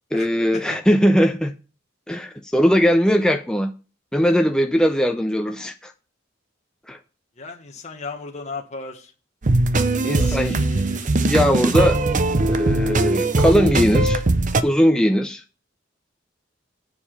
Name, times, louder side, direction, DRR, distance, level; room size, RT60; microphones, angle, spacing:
voice 1, 0.1-1.5 2.1-3.7 4.1-5.9 6.9-7.0 10.0-10.6 11.3-12.0 12.4-14.2 14.6-15.4, equal, 5° left, 0.5 m, -19 dB
voice 2, 7.4-9.1 10.1-11.1, left 3 dB, 35° left, 1.3 m, -36 dB
sound 1, 9.4-14.6, right 2 dB, 40° right, 0.6 m, -20 dB
7.2 x 6.7 x 5.8 m
head